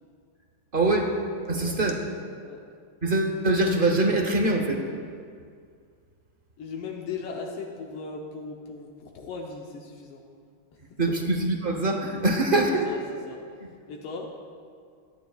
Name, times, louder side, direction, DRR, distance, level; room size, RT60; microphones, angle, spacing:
voice 1, 0.7-1.1 1.5-2.0 3.0-4.8 11.0-12.9, right 2 dB, 40° right, 3 dB, 0.8 m, -23 dB
voice 2, 6.6-10.2 11.1-11.2 12.7-13.4 13.9-14.3, left 5 dB, 85° left, 0 dB, 1.9 m, -37 dB
22.5 x 10.5 x 2.4 m, 2.2 s
omnidirectional pair, 2.4 m